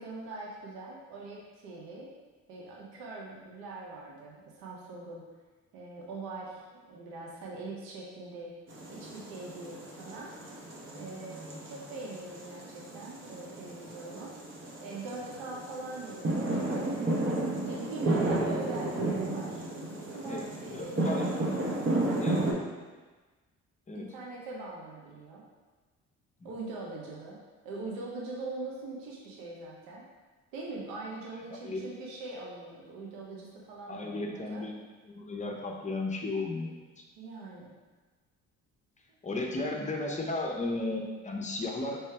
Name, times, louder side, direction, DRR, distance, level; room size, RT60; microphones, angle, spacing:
voice 1, 0.0-2.1 2.5-5.3 5.7-8.5 8.9-10.3 10.9-14.3 14.8-19.6 20.0-21.4 23.9-25.4 26.4-30.0 30.5-34.7 37.2-37.7, right 2 dB, 85° right, -3 dB, 0.8 m, -42 dB
sound 1, 8.7-22.5, right 2 dB, 40° right, 0.9 m, -33 dB
voice 2, 20.7-21.3 22.1-22.4 23.9-24.1 31.5-31.8 33.9-34.8 35.1-36.7 37.0-37.1 39.2-42.0, left 2 dB, 20° left, 0 dB, 0.7 m, -34 dB
3.2 x 3.0 x 3.3 m, 1.3 s
supercardioid pair, 65°, 33 cm